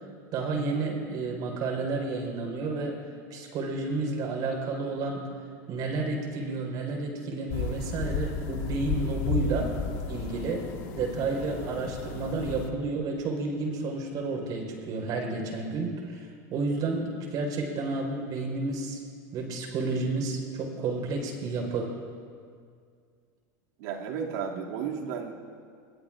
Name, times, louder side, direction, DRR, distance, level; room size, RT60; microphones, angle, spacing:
voice 1, 0.3-3.0 3.3-5.3 5.7-9.7 10.1-10.7 10.9-19.0 19.3-21.9, right 3 dB, 45° right, 1 dB, 4.5 m, -31 dB
sound 1, 7.5-12.7, left 5 dB, 55° left, 1.6 m, -33 dB
voice 2, 23.8-25.3, right 7 dB, 70° right, -1 dB, 2.5 m, -33 dB
25.0 x 21.5 x 2.5 m, 2.2 s
supercardioid pair, 135°, 10 cm